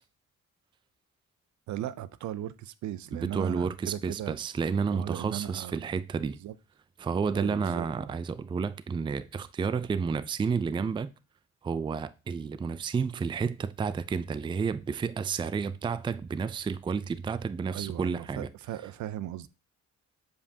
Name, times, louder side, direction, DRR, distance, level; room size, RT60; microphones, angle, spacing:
voice 1, 1.7-4.4 4.9-5.8 6.4-6.5 7.3-8.2 17.7-19.5, right 12 dB, 70° right, 0.5 m, -37 dB
voice 2, 3.1-6.4 7.0-11.1 11.6-18.5, right 5 dB, 15° right, 0.3 m, -31 dB
7.5 x 4.9 x 2.7 m
cardioid pair, 90°, 30 cm